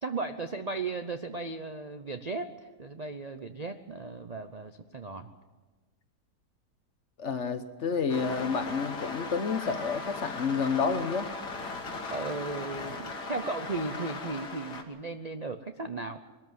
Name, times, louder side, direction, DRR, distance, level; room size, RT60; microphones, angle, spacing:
voice 1, 0.0-2.5 2.8-5.3 12.1-16.2, right 3 dB, 40° right, 7 dB, 0.5 m, -36 dB
voice 2, 7.2-11.3, left 5 dB, 50° left, 10 dB, 1.2 m, -29 dB
sound 1, 8.1-14.8, left 3 dB, 75° left, 2.4 m, -38 dB
21.5 x 13.5 x 9.4 m, 1.3 s
omnidirectional pair, 1.8 m